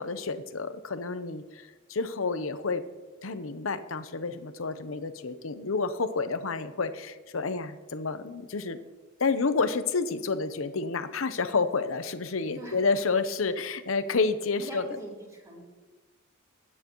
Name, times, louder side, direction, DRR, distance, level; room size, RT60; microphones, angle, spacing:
voice 1, 0.0-2.8 3.2-8.8 9.2-14.8, left 4 dB, 70° left, 11 dB, 0.8 m, -29 dB
voice 2, 14.6-15.6, equal, 15° right, -5 dB, 3.8 m, -42 dB
21.0 x 9.3 x 3.1 m, 1.3 s
head